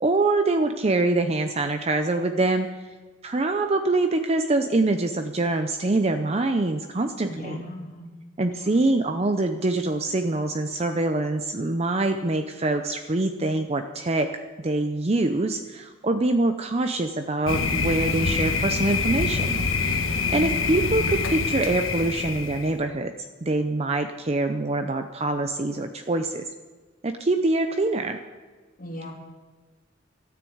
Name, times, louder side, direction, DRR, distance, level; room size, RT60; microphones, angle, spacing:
voice 1, 0.0-2.7 3.2-7.6 8.4-14.3 14.6-20.1 20.3-23.1 23.4-26.4 27.0-28.2, right 2 dB, 30° right, 7 dB, 0.6 m, -24 dB
voice 2, 7.2-8.1 8.6-8.8 20.1-20.7 28.8-29.1, left 1 dB, 45° left, -1 dB, 2.9 m, -36 dB
Thunder, 17.5-22.7, left 4 dB, 85° left, 1.3 m, -26 dB
13.5 x 9.4 x 7.9 m, 1.4 s
head